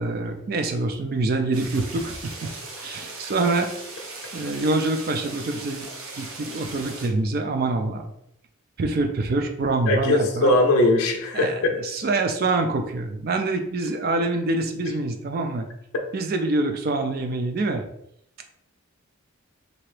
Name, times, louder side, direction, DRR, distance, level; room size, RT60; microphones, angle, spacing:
voice 1, 0.0-2.5 2.8-3.7 4.3-5.9 6.1-8.1 8.8-10.5 11.3-15.7 16.1-17.8, right 2 dB, 45° right, 6 dB, 0.3 m, -25 dB
sound 1, 1.5-7.1, right 3 dB, 80° right, 0.6 m, -38 dB
voice 2, 9.9-11.7, left 2 dB, 80° left, 2 dB, 0.4 m, -20 dB
2.8 x 2.5 x 3.2 m, 0.78 s
head